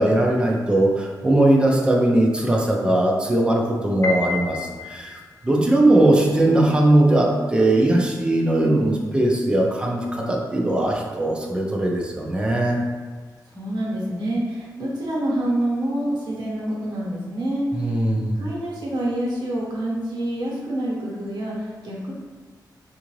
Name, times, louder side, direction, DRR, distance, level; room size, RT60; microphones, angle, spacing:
voice 1, 0.0-5.2 5.4-12.8 17.7-18.4, right 1 dB, 15° right, -1 dB, 0.4 m, -19 dB
Piano, 4.0-5.3, left 4 dB, 45° left, 0.4 m, -29 dB
voice 2, 13.5-18.0 18.3-22.1, right 1 dB, 75° right, -5 dB, 1.0 m, -27 dB
3.6 x 2.5 x 3.0 m, 1.5 s
wide cardioid pair, 175°, 7 cm